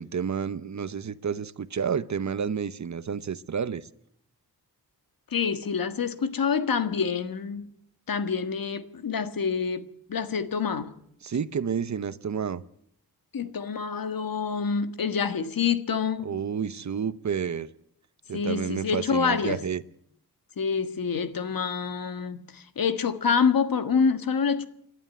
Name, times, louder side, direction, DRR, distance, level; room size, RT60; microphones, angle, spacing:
voice 1, 0.0-3.9 11.2-12.6 16.2-17.7 18.3-19.8, right 7 dB, 50° right, 0.9 m, -30 dB
voice 2, 5.3-7.7 8.1-10.9 13.3-16.3 18.3-19.6 20.6-24.7, left 6 dB, 65° left, 1.6 m, -27 dB
28.0 x 11.5 x 9.9 m
wide cardioid pair, 110°, 38 cm